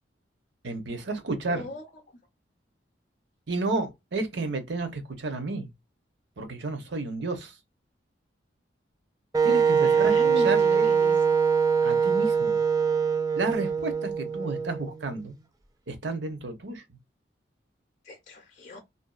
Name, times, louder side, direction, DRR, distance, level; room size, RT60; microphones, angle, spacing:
voice 1, 0.6-1.7 3.5-5.7 6.4-7.5 9.4-10.2 10.4-10.9 11.8-12.6 13.4-15.3 15.9-16.8, right 3 dB, 70° right, 0.7 m, -31 dB
voice 2, 1.5-1.8 9.8-11.3 18.0-18.8, left 2 dB, 40° left, 0.5 m, -39 dB
Wind instrument woodwind instrument, 9.3-15.2, right 6 dB, 20° right, 0.3 m, -23 dB
2.6 x 2.2 x 2.3 m
head